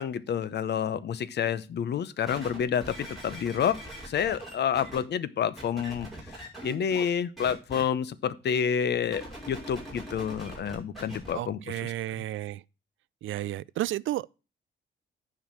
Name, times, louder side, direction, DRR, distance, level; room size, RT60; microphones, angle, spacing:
voice 1, 0.0-3.8 4.1-11.9, left 8 dB, 60° left, 0.8 m, -29 dB
sound 1, 2.3-5.0 5.6-7.1 7.4-7.8 9.0-11.3 12.0-12.1, right 1 dB, ahead, 5.3 m, -42 dB
voice 2, 11.3-12.6 13.2-14.3, right 14 dB, 85° right, 0.4 m, -32 dB
10.5 x 4.8 x 6.0 m
cardioid pair, 140°, 20 cm